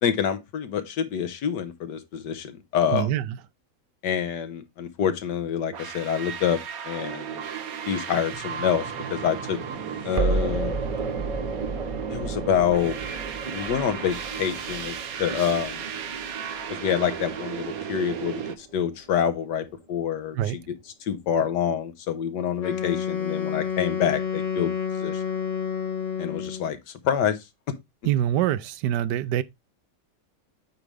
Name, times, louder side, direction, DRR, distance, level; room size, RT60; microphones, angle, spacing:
voice 1, 0.0-3.1 4.0-6.6 6.8-7.4 7.9-9.6 10.0-10.7 12.1-13.0 13.5-15.8 16.7-20.6 21.0-24.7 25.0-25.2 26.2-27.4, left 8 dB, 90° left, 1.6 m, -27 dB
voice 2, 2.9-3.4 20.3-20.6 28.0-29.4, right 12 dB, 85° right, 1.2 m, -25 dB
sound 1, 5.7-18.6, right 8 dB, 60° right, 1.2 m, -35 dB
sound 2, 8.3-19.4, right 3 dB, 40° right, 0.5 m, -33 dB
Wind instrument woodwind instrument, 22.6-26.7, left 8 dB, 50° left, 1.5 m, -29 dB
8.8 x 3.2 x 5.0 m
omnidirectional pair, 1.8 m